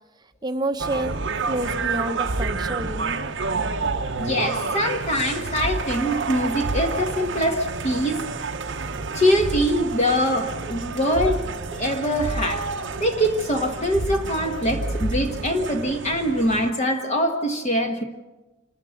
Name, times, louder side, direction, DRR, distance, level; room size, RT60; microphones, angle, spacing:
voice 1, 0.4-1.2 1.4-3.2, right 1 dB, 20° right, 8 dB, 1.0 m, -28 dB
sound 1, 0.8-16.7, right 3 dB, 55° right, 0.9 m, -29 dB
voice 2, 4.2-8.2 9.1-11.4 11.7-12.7 13.0-18.0, equal, 30° left, 3 dB, 1.4 m, -23 dB
27.0 x 13.5 x 7.9 m, 1.1 s
head